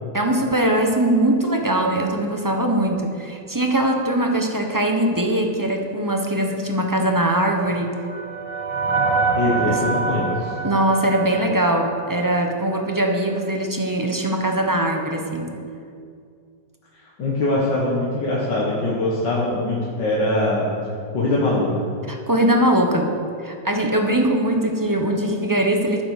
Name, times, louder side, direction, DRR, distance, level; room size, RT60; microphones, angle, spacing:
voice 1, 0.1-7.9 9.6-9.8 10.6-15.5 22.1-23.1 23.4-26.0, right 1 dB, 15° right, 2 dB, 0.9 m, -21 dB
sound 1, 7.2-12.6, right 4 dB, 85° right, 1.7 m, -26 dB
voice 2, 9.3-10.5 17.2-20.7 21.1-21.7, left 2 dB, 75° left, -5 dB, 2.2 m, -22 dB
11.5 x 9.7 x 6.6 m, 2.3 s
omnidirectional pair, 1.9 m